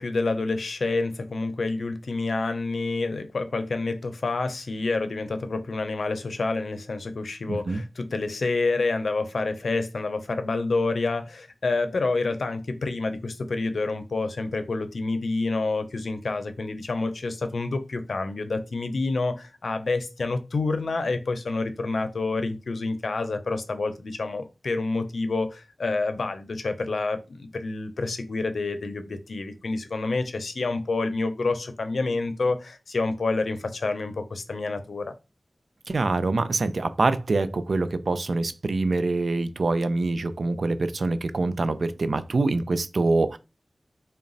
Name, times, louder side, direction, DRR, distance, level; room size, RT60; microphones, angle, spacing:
voice 1, 0.0-35.1, left 3 dB, 90° left, 0.5 m, -28 dB
voice 2, 7.5-7.8 35.9-43.4, right 3 dB, 80° right, 0.4 m, -25 dB
3.9 x 2.2 x 3.8 m
wide cardioid pair, 55°, 0 cm